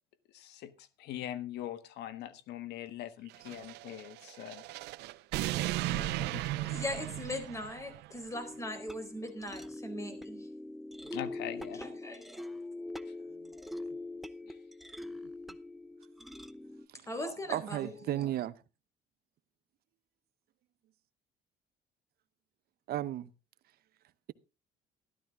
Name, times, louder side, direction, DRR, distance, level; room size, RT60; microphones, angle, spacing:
voice 1, 0.3-4.6 5.9-6.5 11.1-11.8 14.5-14.6, left 12 dB, 80° left, 1.4 m, -42 dB
sound 1, 3.3-8.1, right 17 dB, 90° right, 0.6 m, -36 dB
voice 2, 6.5-10.5 11.8-12.4 17.1-18.3, left 1 dB, 15° left, 4.2 m, -40 dB
sound 2, 8.3-16.9, left 2 dB, ahead, 0.8 m, -43 dB
voice 3, 17.5-18.5 22.9-23.3, right 13 dB, 65° right, 0.9 m, -34 dB
13.5 x 12.0 x 3.7 m
cardioid pair, 110°, 17 cm